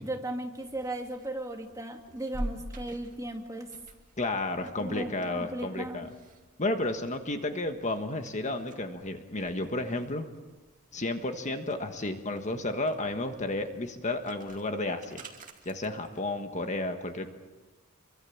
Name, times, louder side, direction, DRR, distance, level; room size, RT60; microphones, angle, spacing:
voice 1, 0.0-3.7 4.8-6.1, right 1 dB, 15° right, 3 dB, 2.2 m, -36 dB
sound 1, 0.5-16.6, right 1 dB, 40° right, 2.4 m, -48 dB
voice 2, 4.2-6.1 6.6-10.3 10.9-15.3 15.6-17.3, left 2 dB, 35° left, 6 dB, 1.5 m, -32 dB
27.5 x 24.0 x 7.2 m, 1.2 s
head